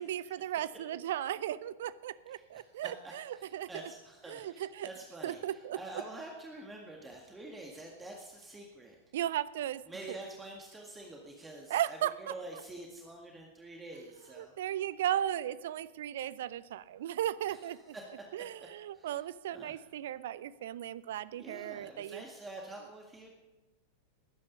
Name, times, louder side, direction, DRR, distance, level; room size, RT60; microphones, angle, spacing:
voice 1, 0.0-3.9 4.3-4.9 5.2-6.0 9.1-9.8 10.1-10.2 11.7-12.6 14.3-18.0 18.3-22.2, right 11 dB, 55° right, 19 dB, 0.5 m, -36 dB
voice 2, 3.4-5.4 5.7-9.0 9.9-14.5 17.9-18.0 18.9-19.1 19.5-19.8 21.4-23.3, right 2 dB, 10° right, 0 dB, 1.8 m, -47 dB
19.5 x 9.6 x 5.4 m, 1.1 s
figure-of-eight pair, 90°, 0 cm